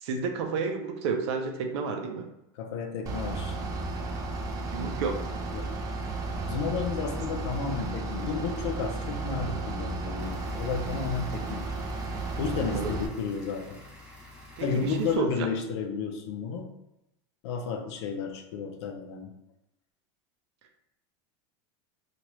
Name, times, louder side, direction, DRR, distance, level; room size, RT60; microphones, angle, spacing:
voice 1, 0.0-2.3 4.7-5.2 12.6-12.9 14.6-15.3, right 5 dB, 70° right, 4 dB, 0.6 m, -31 dB
voice 2, 2.6-3.6 5.5-5.7 6.5-11.6 12.4-13.8 14.6-16.7 17.4-19.3, left 5 dB, 75° left, 4 dB, 0.6 m, -32 dB
Bus / Idling, 3.1-13.1, right 2 dB, 25° right, 0.3 m, -33 dB
sound 1, 10.2-15.2, left 1 dB, 5° right, 0.7 m, -49 dB
2.9 x 2.5 x 3.0 m, 0.87 s
supercardioid pair, 150°, 15 cm